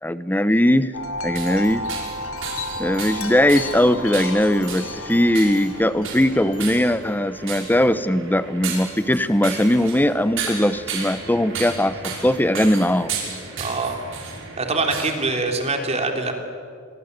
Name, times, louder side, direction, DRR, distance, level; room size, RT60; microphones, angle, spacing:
voice 1, 0.0-0.9 1.2-1.9 2.8-13.1, left 1 dB, 10° left, 14 dB, 0.8 m, -20 dB
Wind chime, 0.9-7.4, left 2 dB, 85° left, 3.0 m, -33 dB
sound 1, 1.2-15.1, right 5 dB, 65° right, 6.1 m, -34 dB
voice 2, 13.5-14.3 14.6-16.3, right 3 dB, 30° right, 4 dB, 3.2 m, -24 dB
27.5 x 23.0 x 8.2 m, 2.2 s
head